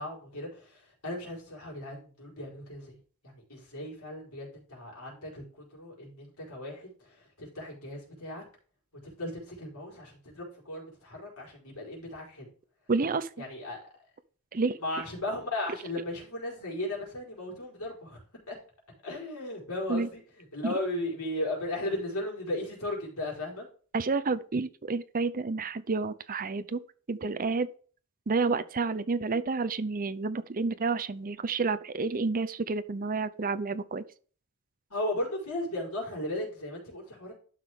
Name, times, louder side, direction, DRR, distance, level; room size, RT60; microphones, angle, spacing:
voice 1, 0.0-3.0 3.2-6.9 7.4-8.4 9.0-12.5 13.4-13.8 14.8-18.2 18.5-18.6 19.0-20.2 20.5-23.6 34.9-37.3, left 1 dB, 80° left, 4.6 m, -36 dB
voice 2, 12.9-13.3 14.5-14.8 19.9-20.1 20.6-20.7 23.9-26.8 27.1-27.7 28.3-34.0, right 4 dB, 40° right, 0.6 m, -29 dB
12.0 x 6.3 x 3.7 m
head